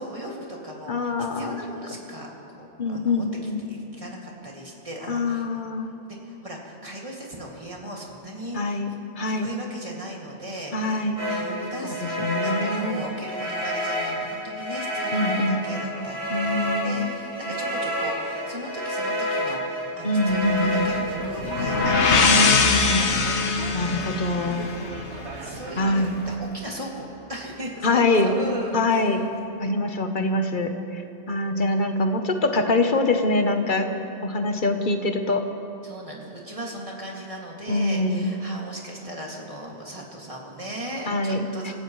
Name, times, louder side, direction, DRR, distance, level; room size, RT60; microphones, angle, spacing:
voice 1, 0.0-2.3 2.6-5.6 6.0-9.0 9.2-23.1 24.0-24.1 25.4-29.2 35.8-41.7, right 1 dB, 30° right, -3 dB, 2.5 m, -37 dB
voice 2, 0.9-1.6 2.8-3.7 5.1-5.9 8.5-9.5 10.7-11.2 12.2-13.0 15.1-15.6 16.3-17.1 20.0-20.9 22.2-23.1 23.7-24.7 25.8-26.1 27.8-28.3 28.7-29.2 29.6-31.0 31.3-33.9 34.2-35.4 37.7-38.3 41.1-41.7, left 2 dB, 45° left, 5 dB, 1.2 m, -24 dB
sound 1, 11.2-22.8, equal, 55° right, 5.2 m, -29 dB
sound 2, 20.3-26.4, right 3 dB, 75° right, 1.3 m, -39 dB
sound 3, 21.4-25.2, left 5 dB, 75° left, 1.3 m, -22 dB
27.0 x 15.5 x 3.2 m, 2.8 s
omnidirectional pair, 1.2 m